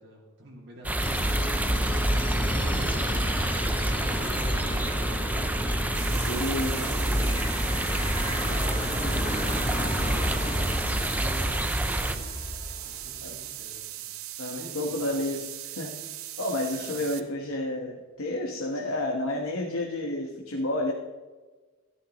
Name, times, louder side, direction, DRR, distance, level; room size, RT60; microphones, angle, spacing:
voice 1, 0.0-1.4 1.8-3.5 3.9-5.4 6.1-14.1 14.5-15.3 16.7-17.4, right 1 dB, 50° right, -3 dB, 2.3 m, -46 dB
sound 1, 0.8-12.2, right 1 dB, 5° right, 0.5 m, -28 dB
sound 2, 1.0-13.3, left 1 dB, 25° left, 1.2 m, -32 dB
sound 3, 6.0-17.2, right 13 dB, 80° right, 0.8 m, -39 dB
voice 2, 6.2-6.8 13.2-13.4 14.4-15.9 16.4-20.9, left 1 dB, 80° left, 1 dB, 1.3 m, -30 dB
14.0 x 14.0 x 3.1 m, 1.3 s
head